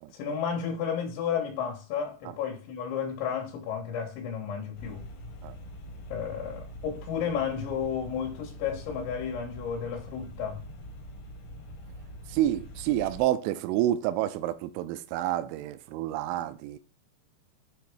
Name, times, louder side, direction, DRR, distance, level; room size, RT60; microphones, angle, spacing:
voice 1, 0.1-5.0 6.1-10.6, left 7 dB, 80° left, 3.5 m, -32 dB
sound 1, 4.7-13.2, equal, 60° left, 1.8 m, -44 dB
voice 2, 12.3-16.8, right 13 dB, 90° right, 3.0 m, -29 dB
8.8 x 3.4 x 4.8 m
omnidirectional pair, 5.3 m